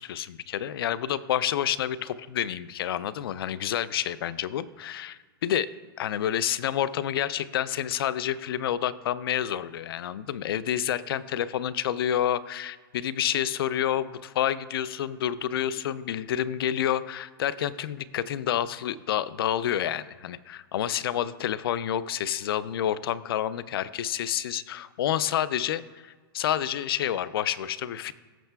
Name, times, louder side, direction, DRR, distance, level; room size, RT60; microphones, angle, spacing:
voice 1, 0.0-5.7 6.0-28.1, left 10 dB, 75° left, 17 dB, 0.4 m, -29 dB
15.0 x 6.4 x 2.3 m, 1.4 s
supercardioid pair, 175°, 13 cm